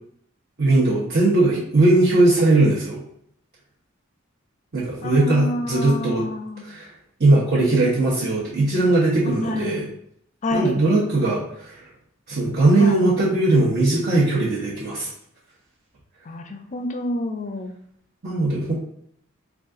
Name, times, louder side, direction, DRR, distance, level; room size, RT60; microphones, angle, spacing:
voice 1, 0.6-3.0 4.7-6.2 6.6-6.9 7.2-9.9 10.5-11.8 12.3-15.1 18.2-18.7, right 2 dB, 50° right, -8 dB, 0.9 m, -19 dB
voice 2, 5.0-6.7 9.2-9.8 10.4-10.8 12.8-13.1 16.3-17.8, left 1 dB, 35° left, 5 dB, 0.4 m, -28 dB
4.0 x 2.4 x 3.6 m, 0.69 s
head